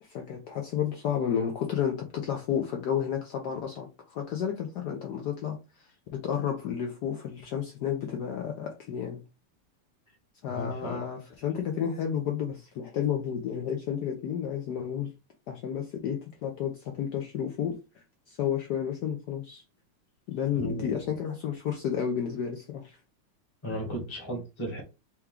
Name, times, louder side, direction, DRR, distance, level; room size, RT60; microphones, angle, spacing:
voice 1, 0.0-9.2 10.4-15.1 15.5-17.8 18.3-19.6 20.3-23.0, left 8 dB, 70° left, 0.9 m, -31 dB
voice 2, 10.5-11.0 20.5-21.1 23.6-24.8, right 1 dB, 20° left, 0.8 m, -35 dB
4.5 x 2.3 x 3.6 m
omnidirectional pair, 2.4 m